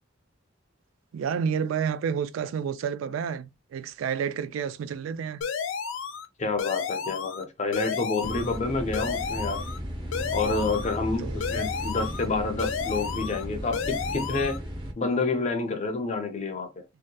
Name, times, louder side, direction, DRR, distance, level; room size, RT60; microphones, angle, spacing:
voice 1, 1.1-5.4 11.0-11.4, right 7 dB, 90° right, 0.3 m, -30 dB
sound 1, 5.4-6.3 6.6-7.4 7.7-8.6 8.9-9.8 10.1-11.0 11.4-12.3 12.6-13.4 13.7-14.6, left 6 dB, 85° left, 0.4 m, -32 dB
voice 2, 6.4-9.6 10.3-14.6 15.0-16.8, left 3 dB, 35° left, 0.6 m, -29 dB
sound 2, 8.2-14.9, equal, 25° right, 0.6 m, -35 dB
2.8 x 2.0 x 2.2 m
head